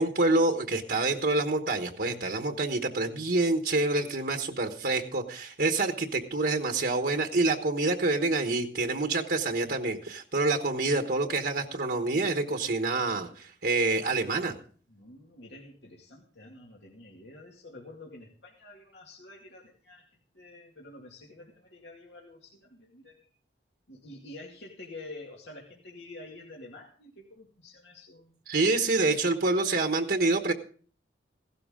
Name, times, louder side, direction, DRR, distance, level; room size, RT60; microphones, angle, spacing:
voice 1, 0.0-14.5 28.5-30.5, right 3 dB, 60° right, 5 dB, 1.2 m, -27 dB
voice 2, 14.9-20.1 20.3-23.3 23.9-28.4, left 2 dB, 75° left, -1 dB, 2.2 m, -48 dB
16.5 x 12.5 x 3.7 m, 0.43 s
head